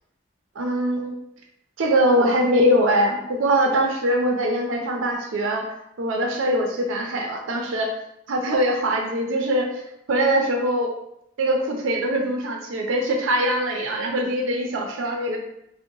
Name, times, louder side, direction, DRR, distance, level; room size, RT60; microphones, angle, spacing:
voice 1, 0.6-1.1 1.8-7.9 8.3-9.8 10.1-10.9 11.4-15.4, right 1 dB, 90° right, 2 dB, 0.5 m, -22 dB
2.7 x 2.1 x 3.7 m, 0.80 s
head